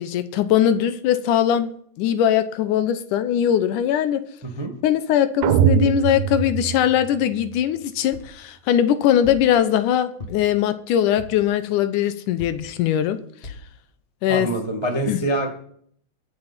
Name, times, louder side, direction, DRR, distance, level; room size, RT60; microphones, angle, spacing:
voice 1, 0.0-1.7 2.0-4.2 4.8-13.2 13.4-13.5 14.2-14.5 15.1-15.2, left 10 dB, 80° left, 12 dB, 2.2 m, -21 dB
sound 1, 5.4-7.6, right 8 dB, 90° right, 2.5 m, -21 dB
sound 2, 8.1-8.4 9.2-9.5 10.2-10.6 11.2-11.5 12.4-12.7 13.4-13.7 14.3-14.4 14.7-14.8, left 3 dB, 20° left, 2.0 m, -38 dB
voice 2, 14.3-15.5, right 1 dB, 20° right, 3 dB, 0.7 m, -24 dB
22.0 x 7.9 x 4.3 m, 0.62 s
omnidirectional pair, 3.8 m